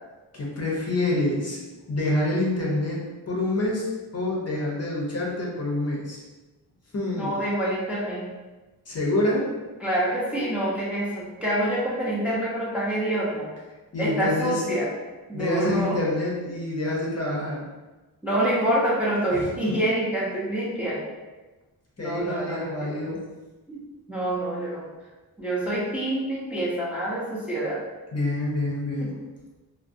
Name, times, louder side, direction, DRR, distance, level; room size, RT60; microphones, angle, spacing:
voice 1, 0.3-1.6 1.9-6.2 6.9-7.3 8.9-9.5 13.9-14.6 15.3-17.6 19.6-19.8 22.0-23.2 28.1-29.1, left 2 dB, 40° left, -3 dB, 0.6 m, -27 dB
voice 2, 7.2-8.3 9.8-13.5 14.0-14.9 15.3-16.0 18.2-21.0 22.0-23.1 23.7-23.8 24.1-24.8 25.4-27.8 29.0-29.1, right 1 dB, 5° right, -7 dB, 0.5 m, -26 dB
2.5 x 2.0 x 2.4 m, 1.2 s
wide cardioid pair, 110°, 37 cm